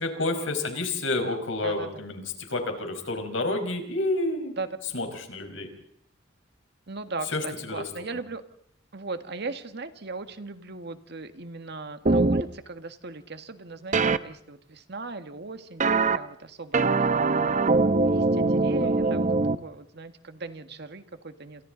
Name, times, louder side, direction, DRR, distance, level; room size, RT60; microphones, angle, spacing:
voice 1, 0.0-4.6 4.9-5.7 7.3-7.8 18.8-19.2, left 2 dB, 90° left, 5 dB, 5.1 m, -30 dB
voice 2, 1.6-2.0 4.6-4.7 6.9-8.4 8.9-17.6 18.0-19.4 19.6-21.6, right 3 dB, 60° right, 8 dB, 1.8 m, -38 dB
sound 1, 12.1-12.4 13.9-14.2 15.8-16.2 16.7-19.6, right 3 dB, 40° right, 0.8 m, -22 dB
29.0 x 27.5 x 4.0 m, 0.73 s
head